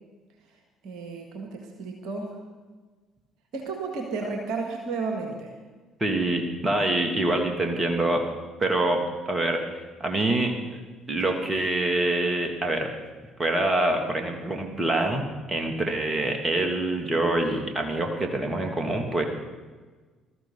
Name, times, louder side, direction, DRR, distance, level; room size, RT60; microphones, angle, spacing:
voice 1, 0.8-2.4 3.5-5.5, right 4 dB, 60° right, 2 dB, 1.8 m, -32 dB
voice 2, 6.0-8.2 8.6-9.0 9.3-10.6 11.1-12.9 13.4-19.2, right 2 dB, 25° right, 3 dB, 2.7 m, -25 dB
21.0 x 13.5 x 4.1 m, 1.4 s
figure-of-eight pair, 50°, 0 cm